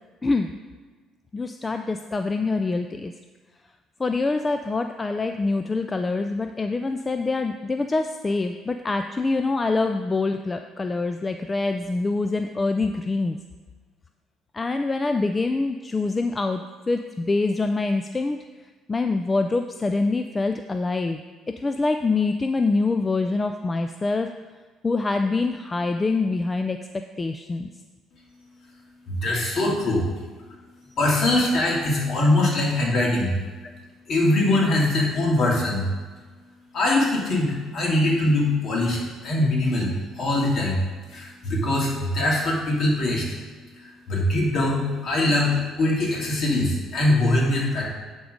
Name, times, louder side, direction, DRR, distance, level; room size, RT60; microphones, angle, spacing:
voice 1, 1.3-3.1 4.0-13.4 14.5-16.6 16.9-18.4 18.9-21.2 21.5-24.3 24.8-27.7 33.6-33.7, left 3 dB, 20° left, 7 dB, 0.3 m, -25 dB
voice 2, 29.1-30.1 31.0-33.4 34.1-35.9 36.7-40.8 41.1-43.2 44.1-47.9, left 1 dB, 55° left, -3 dB, 2.4 m, -22 dB
10.0 x 3.8 x 5.1 m, 1.4 s
cardioid pair, 100°, 0 cm